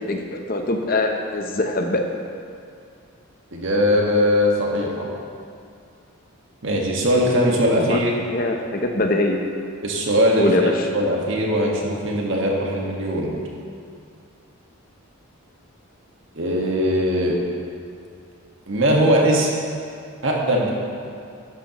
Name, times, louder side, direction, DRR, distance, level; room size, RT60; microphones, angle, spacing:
voice 1, 0.1-2.0 7.8-8.0 8.3-9.4 10.4-10.7, left 2 dB, 40° left, 3 dB, 0.8 m, -22 dB
voice 2, 3.5-5.1 6.6-8.1 9.8-13.3 16.3-17.4 18.7-19.5 20.2-20.7, equal, 60° right, -2 dB, 1.6 m, -20 dB
12.0 x 11.0 x 3.1 m, 2.4 s
head